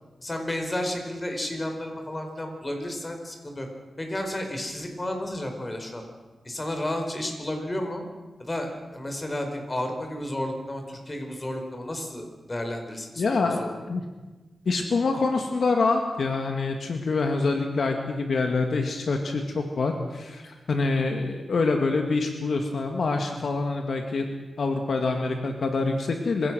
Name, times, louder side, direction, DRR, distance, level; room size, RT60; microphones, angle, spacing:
voice 1, 0.2-3.7 4.0-6.0 6.4-8.0 8.4-13.7, left 1 dB, 30° left, 4 dB, 4.9 m, -32 dB
voice 2, 13.2-14.0 14.7-24.3 24.6-26.5, left 3 dB, 70° left, 4 dB, 2.1 m, -26 dB
25.5 x 17.0 x 6.3 m, 1.3 s
cardioid pair, 65°, 0 cm